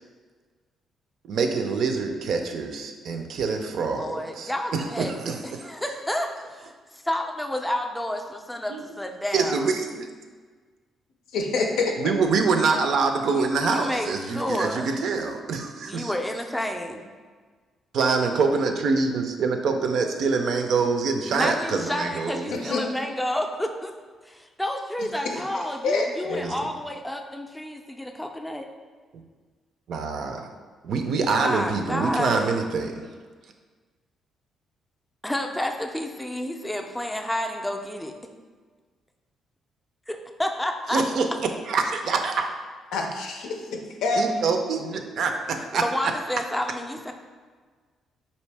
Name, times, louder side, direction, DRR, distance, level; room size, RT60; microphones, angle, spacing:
voice 1, 1.3-5.4 8.7-8.8 9.3-10.1 12.0-16.1 17.9-22.5 26.3-26.5 29.9-30.5 30.8-32.9 40.9-41.3 41.7-42.5 44.2-45.8, right 4 dB, 70° right, 5 dB, 0.4 m, -25 dB
voice 2, 3.9-5.1 5.4-9.7 13.2-15.0 15.9-17.0 21.3-23.9 24.2-28.6 31.3-32.6 35.2-38.2 40.1-41.0 45.6-47.1, left 1 dB, 5° left, 4 dB, 0.4 m, -30 dB
voice 3, 11.3-11.9 22.7-22.8 25.2-25.4 25.8-26.4 42.9-43.5 44.0-44.3, left 3 dB, 85° left, 2 dB, 0.5 m, -25 dB
4.2 x 2.7 x 3.3 m, 1.5 s
cardioid pair, 90°, 0 cm